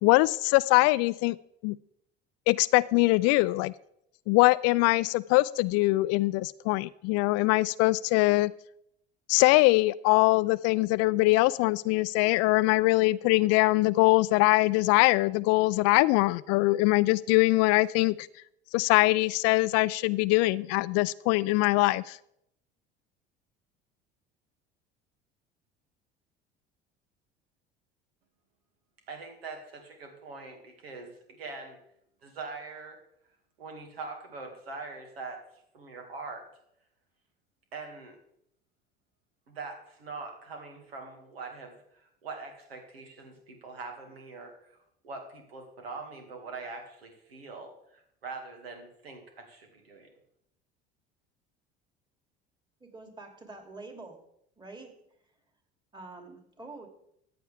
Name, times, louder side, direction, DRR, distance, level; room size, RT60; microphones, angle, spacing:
voice 1, 0.0-1.4 1.6-1.8 2.5-3.7 4.3-8.5 9.3-18.3 18.7-22.2, left 21 dB, 55° left, 19 dB, 0.4 m, -23 dB
voice 2, 29.1-31.8 32.2-33.0 33.6-35.4 35.7-36.4 37.7-38.2 39.5-44.8 45.0-50.1, right 4 dB, 85° right, 3 dB, 2.3 m, -43 dB
voice 3, 52.8-54.2 54.6-55.0 55.9-56.9, right 3 dB, 15° right, 3 dB, 2.9 m, -46 dB
14.5 x 9.5 x 3.5 m, 0.75 s
hypercardioid pair, 65°, 30 cm